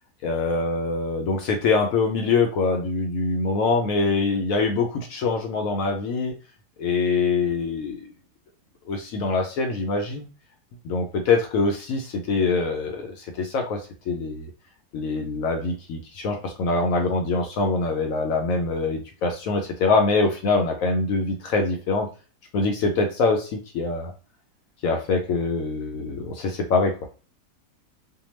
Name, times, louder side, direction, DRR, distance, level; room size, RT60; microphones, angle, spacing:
voice 1, 0.2-6.3 6.8-8.0 8.9-10.3 10.8-14.5 14.9-22.1 22.5-24.1 24.8-27.1, left 3 dB, 70° left, 3 dB, 0.9 m, -24 dB
2.7 x 2.1 x 3.0 m, 0.36 s
omnidirectional pair, 1.7 m